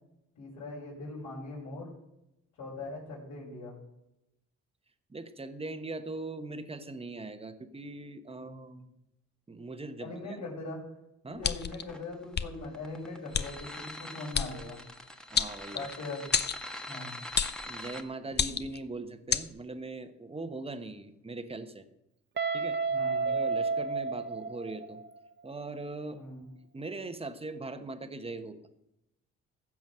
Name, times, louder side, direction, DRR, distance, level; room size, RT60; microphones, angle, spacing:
voice 1, 0.4-1.9 2.6-3.8 8.3-8.8 10.0-10.8 11.3-14.8 15.7-16.3 16.9-17.1 22.9-23.3 26.1-26.4, left 2 dB, 75° left, -8 dB, 5.2 m, -41 dB
voice 2, 5.1-8.8 9.5-10.4 11.2-11.4 15.3-15.9 17.6-21.8 22.5-22.8 23.2-25.0 25.4-26.2 26.7-28.6, right 2 dB, 20° right, 9 dB, 1.2 m, -40 dB
sound 1, 11.4-11.8 12.3-12.5 13.3-13.5 14.3-14.5 15.4-16.0 16.3-16.6 17.4-17.6 18.3-18.8 19.3-19.5, left 7 dB, 35° left, 0.7 m, -29 dB
sound 2, 11.4-18.0, left 1 dB, ahead, 1.3 m, -44 dB
Guitar, 22.4-25.2, right 4 dB, 40° right, 0.8 m, -31 dB
15.5 x 6.2 x 6.2 m, 0.87 s
cardioid pair, 90°, 30 cm